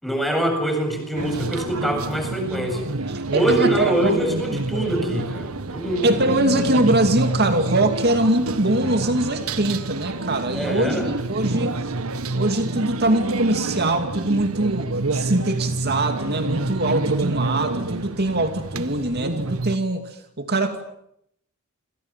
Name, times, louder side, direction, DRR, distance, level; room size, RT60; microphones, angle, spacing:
voice 1, 0.0-2.8 3.3-6.1 10.5-11.1, right 1 dB, ahead, 4 dB, 8.0 m, -24 dB
sound 1, 1.1-19.8, right 2 dB, 85° right, 1.6 m, -28 dB
voice 2, 3.1-4.2 6.0-11.9 12.3-20.8, right 2 dB, 50° right, 6 dB, 2.5 m, -23 dB
28.5 x 27.5 x 7.5 m, 0.74 s
head